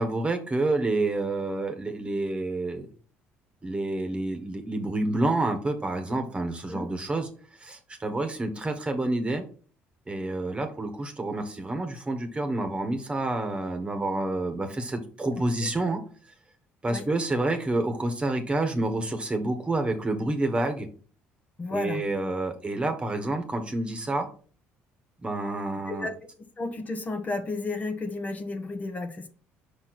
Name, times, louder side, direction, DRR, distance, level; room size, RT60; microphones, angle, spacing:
voice 1, 0.0-2.9 3.6-7.3 7.6-9.4 10.1-16.0 16.8-20.9 21.7-24.3 25.2-26.1, right 2 dB, 20° right, 7 dB, 1.4 m, -28 dB
voice 2, 21.6-22.0 25.9-26.1 26.6-29.3, left 3 dB, 30° left, 6 dB, 1.2 m, -32 dB
5.8 x 4.4 x 4.3 m, 0.40 s
supercardioid pair, 80°, 5 cm